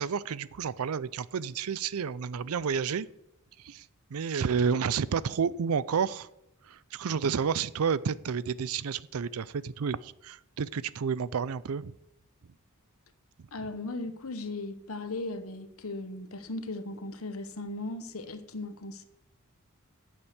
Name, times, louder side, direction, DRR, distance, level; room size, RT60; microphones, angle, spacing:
voice 1, 0.0-3.1 3.6-6.3 6.7-11.9, right 6 dB, 80° right, 0.5 m, -30 dB
voice 2, 13.5-19.0, left 2 dB, 75° left, 1.1 m, -37 dB
8.7 x 7.3 x 8.0 m
head